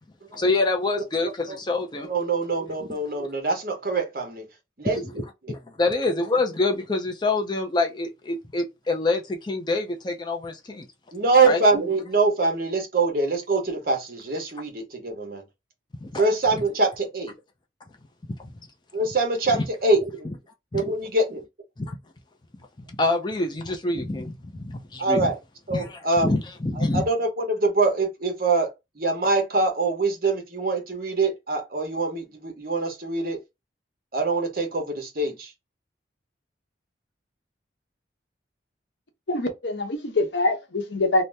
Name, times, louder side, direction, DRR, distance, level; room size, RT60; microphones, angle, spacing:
voice 1, 0.3-2.1 4.9-5.1 5.8-10.9 11.4-11.6 16.0-16.2 16.5-16.6 20.2-20.3 20.7-20.8 21.8-22.0 23.0-25.3 25.7-27.0, left 2 dB, 25° left, 0.4 m, -26 dB
voice 2, 2.0-4.4 4.8-5.6 11.1-15.4 16.2-17.3 18.9-20.0 20.7-21.4 25.0-25.4 25.7-26.3 26.7-28.7 29.0-33.4 34.1-35.5, right 3 dB, 50° right, 0.9 m, -24 dB
voice 3, 39.3-41.2, left 2 dB, 75° left, 0.9 m, -24 dB
2.7 x 2.0 x 3.3 m
head